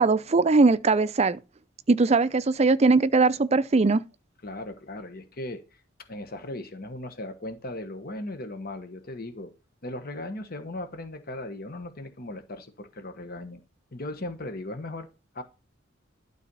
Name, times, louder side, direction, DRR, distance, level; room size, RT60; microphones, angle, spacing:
voice 1, 0.0-1.4 1.9-4.0, right 3 dB, 35° right, 0.5 m, -20 dB
voice 2, 4.4-5.6 6.1-9.5 9.8-13.6 13.9-15.1 15.3-15.4, left 1 dB, 50° left, 1.2 m, -37 dB
12.0 x 4.0 x 5.4 m
head